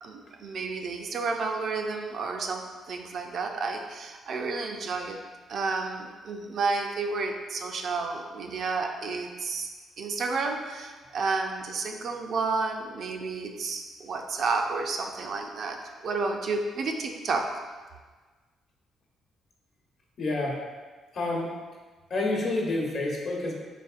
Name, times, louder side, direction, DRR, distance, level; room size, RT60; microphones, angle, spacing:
voice 1, 0.0-5.2 5.5-9.7 10.0-17.5, right 4 dB, 60° right, 3 dB, 0.4 m, -31 dB
voice 2, 20.2-20.6 21.1-21.5 22.1-23.5, left 2 dB, 55° left, -2 dB, 0.9 m, -28 dB
4.0 x 3.5 x 2.5 m, 1.4 s
cardioid pair, 90°, 0 cm